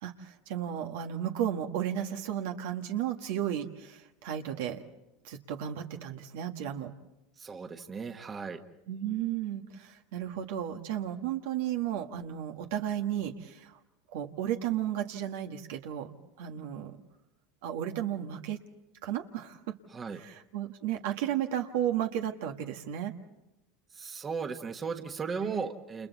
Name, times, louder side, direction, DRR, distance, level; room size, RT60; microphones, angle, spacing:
voice 1, 0.0-4.8 5.2-6.9 8.9-13.8 14.1-17.0 17.6-18.6 19.0-19.7 20.2-23.1 25.4-25.6, right 10 dB, 75° right, 4 dB, 1.7 m, -34 dB
voice 2, 7.4-8.6 19.9-20.2 23.9-26.1, right 5 dB, 25° right, 6 dB, 1.5 m, -36 dB
29.0 x 28.0 x 4.1 m, 0.93 s
supercardioid pair, 105°, 0 cm